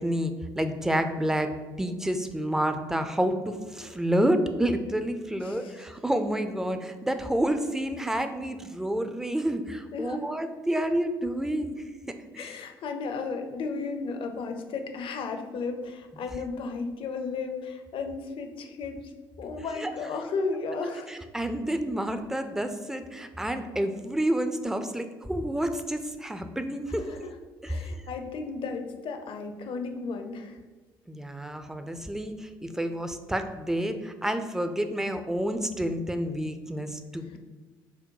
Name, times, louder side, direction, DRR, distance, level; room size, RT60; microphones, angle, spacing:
voice 1, 0.0-1.5 1.8-11.8 12.3-12.6 19.6-19.9 21.1-27.1 27.6-27.9 31.1-37.4, right 1 dB, 5° right, 8 dB, 0.4 m, -29 dB
voice 2, 5.4-5.8 9.9-10.3 12.4-19.1 19.4-21.2 27.0-27.4 27.7-30.6 37.3-37.4, left 4 dB, 50° left, 5 dB, 0.6 m, -34 dB
5.0 x 2.1 x 4.6 m, 1.3 s
hypercardioid pair, 55°, 11 cm